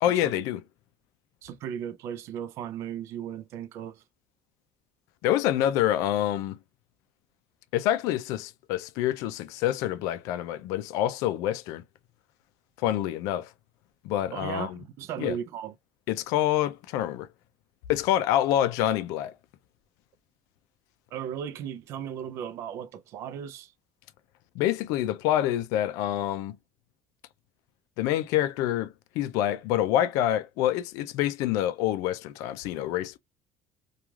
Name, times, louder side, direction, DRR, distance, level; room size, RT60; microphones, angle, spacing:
voice 1, 0.0-0.6 5.2-6.6 7.7-11.8 12.8-13.5 14.0-14.8 15.2-15.4 16.1-17.3 17.9-19.3 24.6-26.6 28.0-33.2, left 12 dB, 85° left, 0.3 m, -27 dB
voice 2, 1.4-4.0 14.3-15.7 21.1-23.7, right 9 dB, 55° right, 0.4 m, -36 dB
3.0 x 2.3 x 2.3 m
cardioid pair, 150°, 6 cm